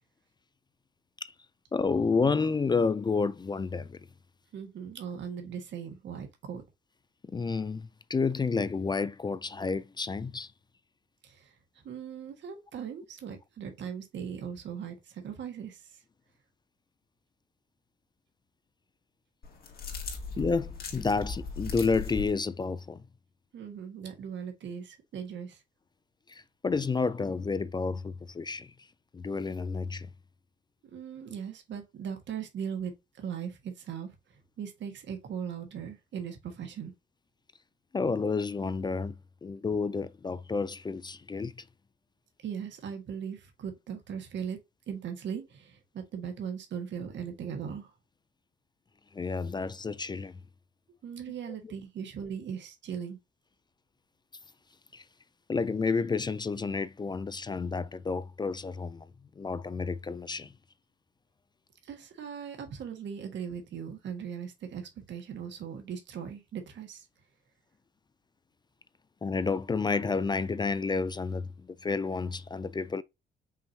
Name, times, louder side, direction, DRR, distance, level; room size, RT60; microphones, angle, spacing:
voice 1, 1.7-4.0 7.3-10.5 20.4-23.0 26.3-28.7 29.1-30.1 31.2-31.3 37.9-41.6 49.1-50.4 51.5-51.7 54.9-55.0 55.5-59.1 59.4-60.5 69.2-73.0, left 4 dB, 20° left, 0.3 m, -30 dB
voice 2, 4.5-6.6 11.2-11.5 11.8-15.8 23.5-25.6 30.9-32.9 33.2-34.1 34.6-36.9 42.4-44.6 44.9-47.9 51.0-53.2 61.8-67.0, right 7 dB, 65° right, 1.4 m, -39 dB
sound 1, 19.4-22.3, left 4 dB, 50° left, 1.8 m, -38 dB
5.6 x 3.1 x 2.7 m
cardioid pair, 90°, 20 cm